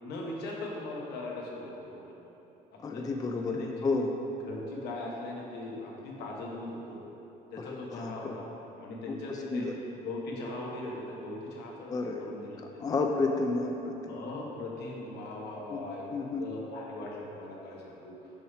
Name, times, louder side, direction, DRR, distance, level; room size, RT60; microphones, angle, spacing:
voice 1, 0.0-2.0 2.7-3.1 3.3-3.9 4.4-7.0 7.5-8.5 8.8-9.7 10.0-11.9 12.2-13.0 14.1-18.1, left 2 dB, 75° left, -2 dB, 1.1 m, -40 dB
voice 2, 2.8-4.1 7.7-8.4 9.1-9.7 11.9-12.3 12.6-14.2 15.7-15.8 16.1-16.5, left 3 dB, 20° left, 3 dB, 0.3 m, -31 dB
5.4 x 3.2 x 5.6 m, 3.0 s
cardioid pair, 110°, 17 cm